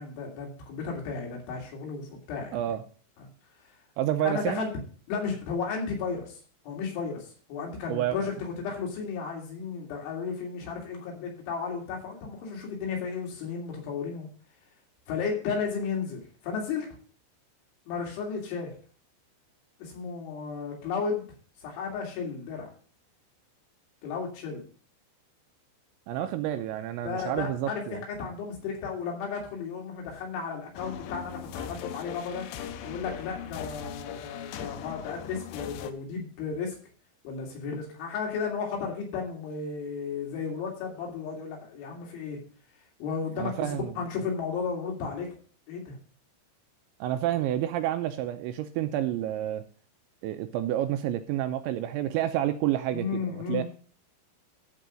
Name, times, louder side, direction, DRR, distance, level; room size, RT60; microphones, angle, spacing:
voice 1, 0.0-2.6 4.2-4.7 5.1-6.4 6.6-14.3 15.1-16.9 17.9-18.7 19.8-21.2 21.6-22.7 24.0-24.6 27.0-32.5 32.8-36.8 37.2-42.4 43.0-45.4 45.7-46.0 52.9-53.6, left 5 dB, 70° left, -1 dB, 5.1 m, -34 dB
voice 2, 2.5-2.8 4.0-4.7 7.9-8.2 26.1-28.0 43.4-43.9 47.0-49.6 50.2-53.6, right 12 dB, 80° right, 8 dB, 2.7 m, -29 dB
sound 1, 30.7-35.9, left 8 dB, 90° left, 3.3 m, -39 dB
13.0 x 4.7 x 6.3 m, 0.42 s
omnidirectional pair, 5.7 m